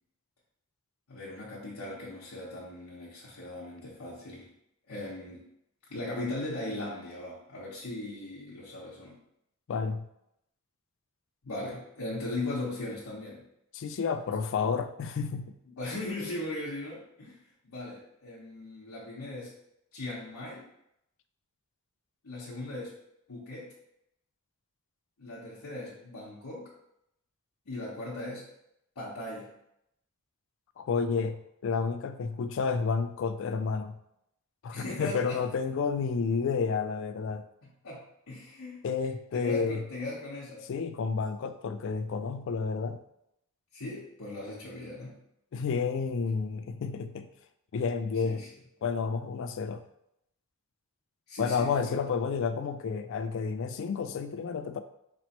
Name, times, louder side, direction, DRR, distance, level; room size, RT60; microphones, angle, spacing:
voice 1, 1.1-4.5 4.9-5.5 5.9-9.2 11.4-13.4 15.8-17.4 17.6-19.5 19.9-20.7 22.2-23.0 23.3-23.7 25.2-26.7 27.7-28.5 29.0-29.5 34.7-35.4 37.8-38.8 39.3-40.7 43.7-45.2 48.2-48.5 51.3-52.0, left 2 dB, 85° left, -8 dB, 0.9 m, -38 dB
voice 2, 9.7-10.1 13.7-15.5 30.8-34.0 34.6-37.4 38.8-39.8 40.7-43.0 45.5-47.3 47.7-48.4 48.8-49.8 51.4-54.8, left 5 dB, 55° left, 9 dB, 0.3 m, -30 dB
4.2 x 3.0 x 2.9 m, 0.78 s
head